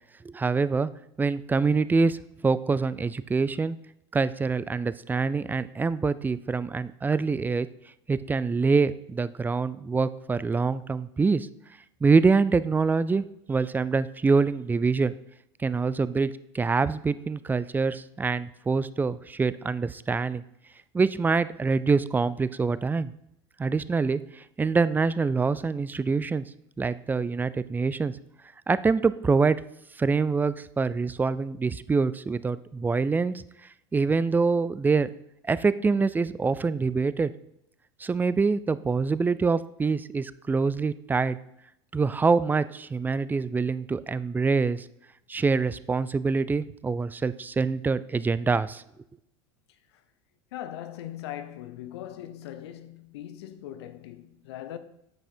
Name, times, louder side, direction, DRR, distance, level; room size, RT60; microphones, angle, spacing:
voice 1, 0.2-0.9 1.2-2.2 2.4-3.8 4.1-7.7 8.1-11.5 12.0-15.2 15.6-20.4 20.9-23.1 23.6-26.4 26.8-28.1 28.7-29.6 30.0-33.4 33.9-35.1 35.5-37.3 38.0-41.4 41.9-44.9 45.3-48.8, right 4 dB, 15° right, 0.3 m, -25 dB
voice 2, 50.5-54.8, left 12 dB, 75° left, 0.8 m, -40 dB
8.7 x 5.8 x 4.4 m
hypercardioid pair, 90°, 14 cm